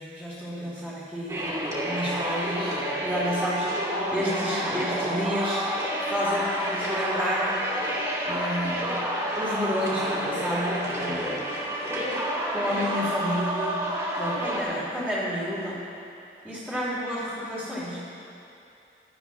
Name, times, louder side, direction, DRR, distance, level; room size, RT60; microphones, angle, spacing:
voice 1, 0.0-1.4 1.8-5.7 6.0-7.6 8.2-8.9 9.4-11.4 12.5-15.9 16.4-18.0, equal, 5° left, -12 dB, 2.9 m, -30 dB
sound 1, 1.3-14.6, equal, 15° right, 2.5 m, -29 dB
19.0 x 12.5 x 2.4 m, 2.7 s
head